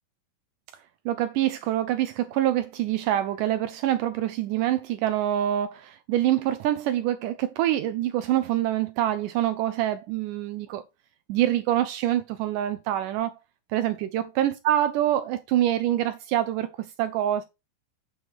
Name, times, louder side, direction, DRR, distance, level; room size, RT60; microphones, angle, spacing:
voice 1, 1.1-10.8 11.3-13.3 13.7-17.5, right 12 dB, 85° right, 1.8 m, -25 dB
7.8 x 4.9 x 5.0 m
omnidirectional pair, 4.3 m